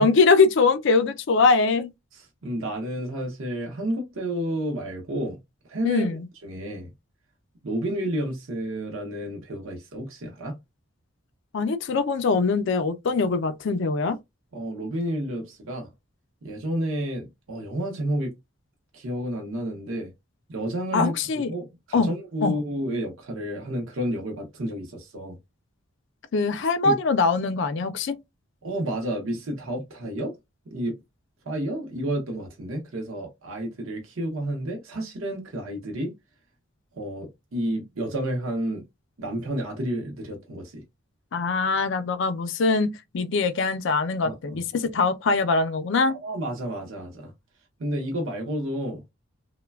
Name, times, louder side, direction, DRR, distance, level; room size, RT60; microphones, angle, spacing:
voice 1, 0.0-1.9 5.9-6.2 11.5-14.2 20.9-21.5 21.9-22.1 22.4-22.5 26.3-28.2 41.3-46.1, left 4 dB, 60° left, 0.4 m, -22 dB
voice 2, 2.1-5.4 5.7-6.1 6.4-6.9 7.6-10.6 14.5-15.9 16.4-18.3 18.9-20.1 20.5-21.1 21.5-25.4 26.8-27.0 28.6-30.3 30.7-31.0 31.4-36.1 36.9-38.8 39.2-40.8 44.2-44.6 46.1-47.3 47.8-49.1, equal, 75° right, 0.7 m, -30 dB
3.1 x 2.1 x 2.2 m
head